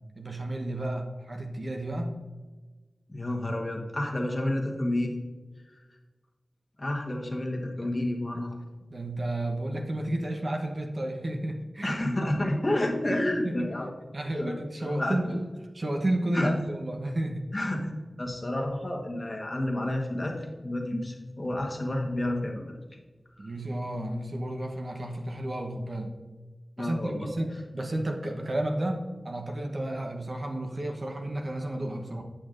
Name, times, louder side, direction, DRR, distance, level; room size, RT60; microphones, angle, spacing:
voice 1, 0.2-2.2 7.8-7.9 8.9-12.3 13.4-13.6 14.1-15.4 15.7-17.4 23.4-26.1 26.8-32.2, right 1 dB, 50° right, 3 dB, 0.9 m, -32 dB
voice 2, 3.1-5.2 6.8-8.6 11.8-13.9 14.2-15.2 16.3-16.6 17.5-17.9 18.2-22.7 23.4-23.5 26.8-27.3, left 1 dB, 35° left, 1 dB, 1.2 m, -30 dB
8.7 x 7.9 x 2.5 m, 1.3 s
wide cardioid pair, 70°, 0 cm